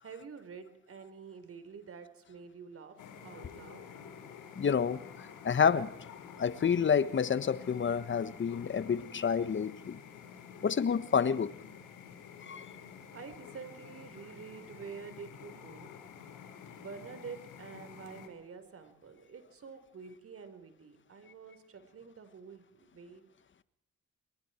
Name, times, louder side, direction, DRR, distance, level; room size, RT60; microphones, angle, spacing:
voice 1, 0.0-3.9 13.1-23.3, right 5 dB, 50° right, 4.5 m, -48 dB
sound 1, 3.0-18.3, left 7 dB, 85° left, 4.8 m, -50 dB
voice 2, 4.6-5.0 5.4-6.0 6.4-10.0 10.6-11.6 12.4-12.7, left 7 dB, 40° left, 1.4 m, -29 dB
28.5 x 22.5 x 4.6 m
cardioid pair, 90°, 30 cm